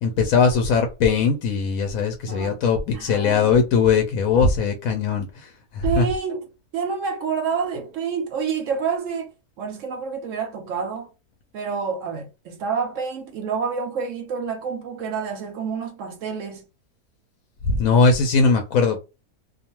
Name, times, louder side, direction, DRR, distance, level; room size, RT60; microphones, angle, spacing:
voice 1, 0.0-6.1 17.7-19.0, left 5 dB, 70° left, 0.9 m, -20 dB
voice 2, 2.3-2.6 2.9-3.5 5.8-9.3 9.6-11.1 11.5-16.6, right 6 dB, 65° right, 0.8 m, -28 dB
2.4 x 2.3 x 2.9 m
omnidirectional pair, 1.7 m